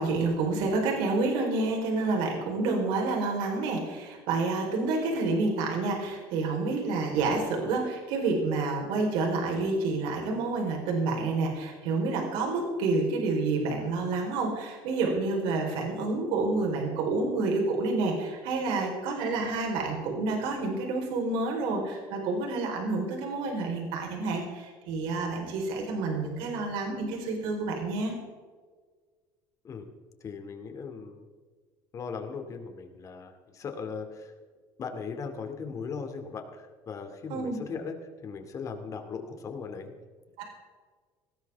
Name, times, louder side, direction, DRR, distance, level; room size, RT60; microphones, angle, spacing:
voice 1, 0.0-28.1 37.3-37.6 40.4-40.5, right 3 dB, 80° right, 1 dB, 4.2 m, -29 dB
voice 2, 30.2-31.2 31.9-34.3 34.8-37.9 38.2-39.9, left 5 dB, 40° left, 5 dB, 2.5 m, -38 dB
19.5 x 16.5 x 3.6 m, 1.5 s
cardioid pair, 125°, 9 cm